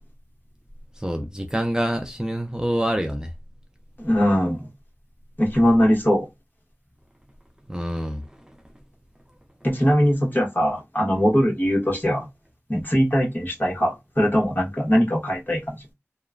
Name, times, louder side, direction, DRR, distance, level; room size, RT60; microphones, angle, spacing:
voice 1, 1.0-3.3 7.7-8.2, equal, 15° right, 0.5 m, -26 dB
voice 2, 4.0-4.7 5.4-6.3 9.6-12.3 12.7-15.8, equal, 40° left, 1.3 m, -21 dB
2.9 x 2.2 x 2.4 m
wide cardioid pair, 40°, 5 cm